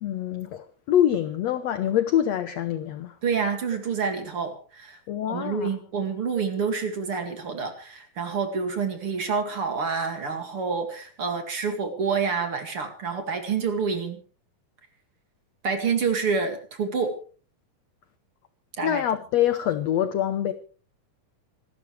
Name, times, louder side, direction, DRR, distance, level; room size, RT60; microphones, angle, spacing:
voice 1, 0.0-3.2 5.1-5.8 18.8-20.5, left 11 dB, 75° left, 1.5 m, -25 dB
voice 2, 3.2-5.0 5.3-14.2 15.6-17.1 18.8-19.0, right 5 dB, 40° right, 2.7 m, -28 dB
26.0 x 13.0 x 3.3 m
omnidirectional pair, 4.2 m